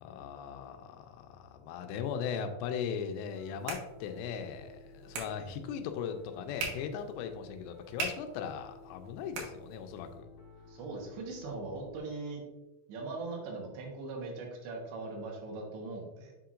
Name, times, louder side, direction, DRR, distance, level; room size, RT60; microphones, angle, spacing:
voice 1, 0.0-10.3, left 7 dB, 85° left, 6 dB, 2.7 m, -38 dB
sound 1, 3.1-10.2, right 4 dB, 70° right, 3.0 m, -44 dB
Piano, 3.4-12.0, left 3 dB, 60° left, 2.2 m, -54 dB
voice 2, 10.7-12.4 12.9-16.3, right 3 dB, 85° right, 0 dB, 3.5 m, -40 dB
7.6 x 5.8 x 2.5 m, 1.0 s
omnidirectional pair, 5.0 m